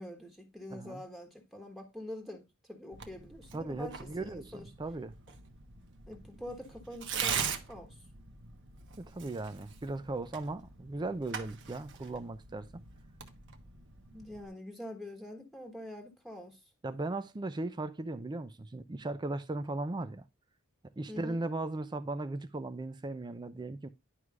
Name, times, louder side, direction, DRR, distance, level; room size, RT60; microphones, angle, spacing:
voice 1, 0.0-4.7 6.1-8.0 14.1-16.6 21.1-21.4, left 1 dB, ahead, 1.3 m, -45 dB
voice 2, 0.7-1.0 3.5-5.1 9.0-12.8 16.8-20.2 21.0-23.9, right 2 dB, 20° right, 0.4 m, -37 dB
Tearing, 2.9-14.5, right 7 dB, 60° right, 1.0 m, -42 dB
11.0 x 4.8 x 2.4 m
head